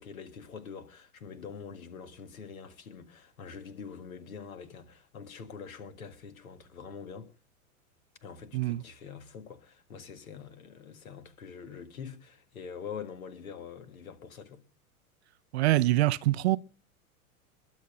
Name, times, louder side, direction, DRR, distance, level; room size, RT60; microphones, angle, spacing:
voice 1, 0.0-7.3 8.2-14.6, left 6 dB, 70° left, 1.9 m, -45 dB
voice 2, 15.5-16.6, right 16 dB, 45° right, 0.6 m, -24 dB
22.0 x 7.3 x 6.6 m
figure-of-eight pair, 95°, 44 cm